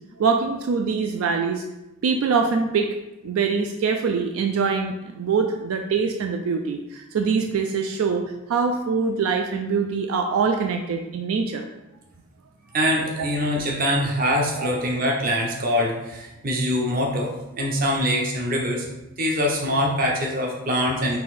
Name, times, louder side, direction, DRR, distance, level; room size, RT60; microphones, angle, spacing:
voice 1, 0.2-1.6 2.0-2.9 3.2-8.2 8.5-11.7 13.2-13.3 14.6-14.7, right 5 dB, 75° right, 4 dB, 0.3 m, -23 dB
voice 2, 12.7-17.3 17.6-18.9 19.2-21.2, equal, 40° right, -1 dB, 0.7 m, -23 dB
4.0 x 2.7 x 4.1 m, 0.96 s
head